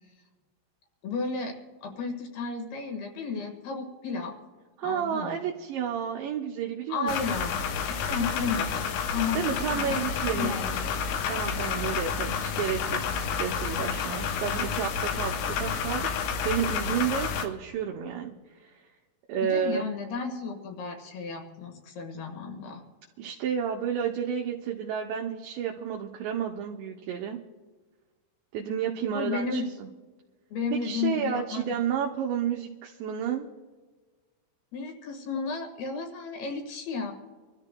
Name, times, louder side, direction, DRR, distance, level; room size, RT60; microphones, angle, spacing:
voice 1, 1.0-1.5 1.8-4.3 4.8-5.4 6.9-11.0 11.6-11.9 19.4-22.8 29.1-29.7 30.5-31.6 34.7-37.2, left 4 dB, 60° left, 4 dB, 3.1 m, -33 dB
voice 2, 4.8-7.1 9.3-10.6 11.3-18.3 19.3-19.8 23.2-27.4 28.5-29.6 30.8-33.5, right 8 dB, 80° right, 1 dB, 2.6 m, -31 dB
sound 1, 7.1-17.5, left 6 dB, 80° left, 3.4 m, -30 dB
26.0 x 13.5 x 2.2 m, 1.4 s
omnidirectional pair, 5.8 m